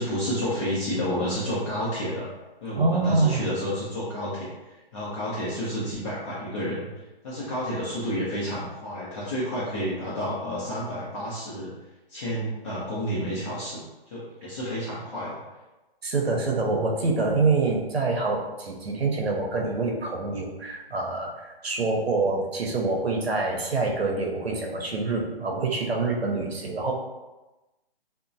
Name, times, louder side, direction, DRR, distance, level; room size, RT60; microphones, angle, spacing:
voice 1, 0.0-2.3 2.6-6.9 7.2-11.7 12.1-15.4, equal, 30° left, -8 dB, 0.6 m, -30 dB
voice 2, 2.8-3.5 16.0-26.9, right 3 dB, 85° right, 0 dB, 0.7 m, -26 dB
2.9 x 2.1 x 2.5 m, 1.1 s
figure-of-eight pair, 140°, 30 cm